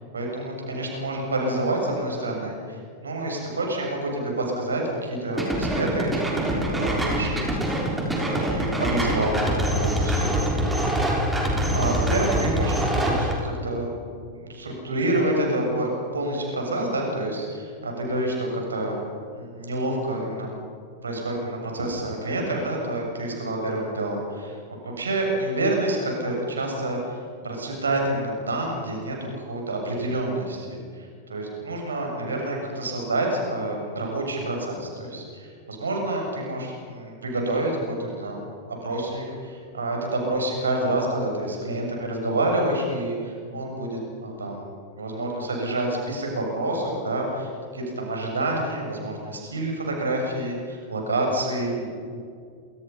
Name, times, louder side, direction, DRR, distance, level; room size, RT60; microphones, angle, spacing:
voice 1, 0.1-7.8 8.1-10.7 11.3-13.9 14.3-19.1 19.3-20.5 21.0-24.6 24.8-27.2 27.4-38.4 38.8-44.7 44.9-51.9, right 1 dB, 75° right, 0 dB, 7.4 m, -28 dB
sound 1, 5.4-13.3, equal, 5° right, 7.0 m, -24 dB
29.0 x 27.0 x 5.7 m, 2.2 s
figure-of-eight pair, 90°, 0 cm